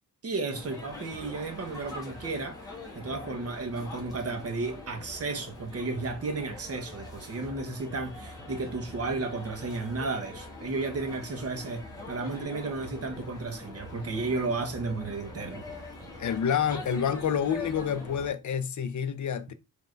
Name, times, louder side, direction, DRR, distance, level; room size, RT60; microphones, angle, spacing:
voice 1, 0.2-2.6 2.9-15.6, right 3 dB, 35° right, 0.8 m, -33 dB
sound 1, 0.5-18.3, left 2 dB, 10° left, 1.2 m, -43 dB
voice 2, 16.2-19.5, left 8 dB, 50° left, 0.5 m, -28 dB
3.7 x 3.3 x 3.2 m
wide cardioid pair, 150°, 40 cm